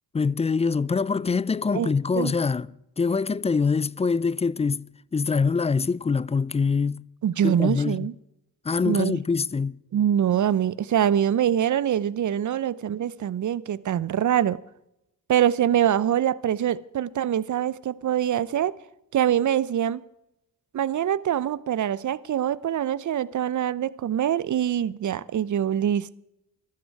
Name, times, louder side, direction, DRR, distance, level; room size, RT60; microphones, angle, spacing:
voice 1, 0.1-4.9 5.1-7.0 7.4-8.1 8.6-9.8, left 5 dB, 15° left, 0.4 m, -24 dB
voice 2, 7.2-8.1 8.8-9.2 9.9-14.6 15.3-18.7 19.1-20.0 20.7-26.2, right 10 dB, 50° right, 0.7 m, -24 dB
14.5 x 12.5 x 4.7 m
supercardioid pair, 55°, 39 cm